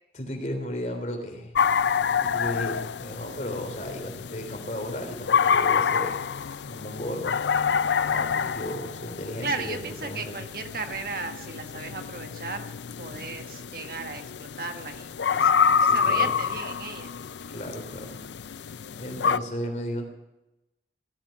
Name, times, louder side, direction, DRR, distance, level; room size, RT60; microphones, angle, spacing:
voice 1, 0.1-1.5 2.2-6.2 6.7-7.4 8.1-10.3 15.8-16.3 17.5-18.2 19.0-20.0, equal, 40° left, 4 dB, 3.3 m, -34 dB
sound 1, 1.5-19.4, left 6 dB, 85° left, 0.5 m, -27 dB
voice 2, 9.4-12.6 13.0-15.5 15.8-17.1, right 4 dB, 55° right, 6 dB, 1.4 m, -35 dB
17.5 x 13.5 x 5.8 m, 0.94 s
head